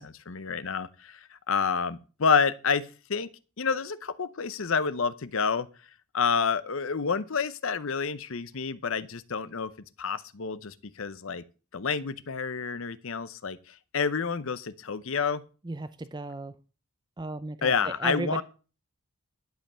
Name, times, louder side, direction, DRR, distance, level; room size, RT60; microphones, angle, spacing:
voice 1, 0.0-3.3 3.6-5.7 6.1-9.7 10.0-11.4 11.7-15.4 17.6-18.4, left 5 dB, 60° left, 0.7 m, -29 dB
voice 2, 15.6-16.6 17.2-18.4, right 2 dB, 20° right, 0.5 m, -35 dB
11.5 x 5.5 x 7.4 m
head